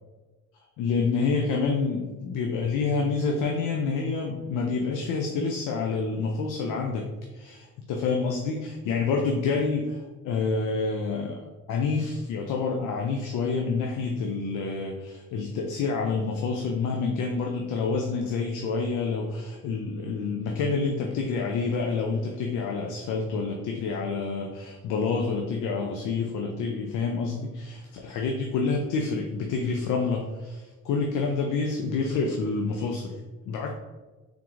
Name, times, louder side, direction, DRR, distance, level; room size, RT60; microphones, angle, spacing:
voice 1, 0.8-33.7, left 4 dB, 90° left, 1 dB, 0.6 m, -28 dB
3.6 x 3.6 x 3.0 m, 1.2 s
cardioid pair, 90°, 30 cm